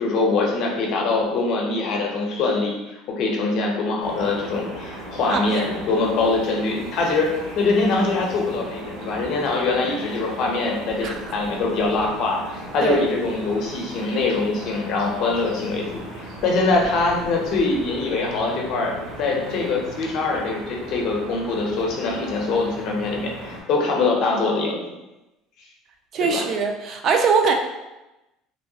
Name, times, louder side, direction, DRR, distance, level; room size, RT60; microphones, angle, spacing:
voice 1, 0.0-15.8 16.1-24.8 26.2-26.4, left 3 dB, 50° left, -1 dB, 0.6 m, -23 dB
sound 1, 4.0-23.6, right 1 dB, 70° right, 0.7 m, -37 dB
voice 2, 5.3-5.7 11.0-11.1 12.8-13.1 26.1-27.5, right 5 dB, 40° right, 4 dB, 0.3 m, -22 dB
3.0 x 2.2 x 2.7 m, 1.0 s
cardioid pair, 150°, 0 cm